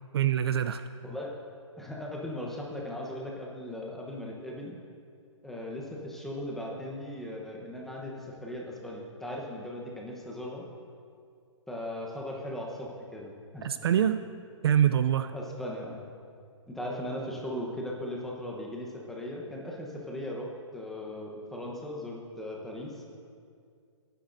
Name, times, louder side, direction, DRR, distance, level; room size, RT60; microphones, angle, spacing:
voice 1, 0.1-0.8 13.6-14.2 14.6-15.3, right 9 dB, 55° right, 11 dB, 0.4 m, -25 dB
voice 2, 1.0-1.3 1.8-4.8 5.4-10.6 11.7-13.7 15.3-16.0 16.7-22.9, left 1 dB, ahead, -2 dB, 0.9 m, -38 dB
18.0 x 10.0 x 2.6 m, 2.3 s
hypercardioid pair, 155°, 16 cm